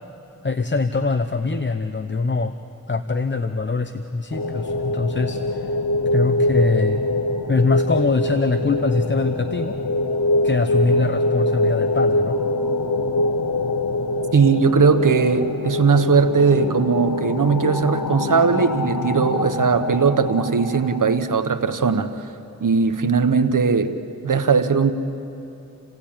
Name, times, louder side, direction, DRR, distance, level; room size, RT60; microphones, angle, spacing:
voice 1, 0.4-2.5 2.9-5.7 6.1-7.0 7.5-9.8 10.4-12.4, left 3 dB, 35° left, 9 dB, 0.8 m, -23 dB
sound 1, 4.3-21.2, left 2 dB, 85° left, 1.1 m, -24 dB
voice 2, 14.3-22.1 22.6-24.0 24.2-24.9, right 5 dB, 75° right, 9 dB, 1.2 m, -19 dB
29.0 x 16.5 x 8.8 m, 2.8 s
cardioid pair, 50°, 32 cm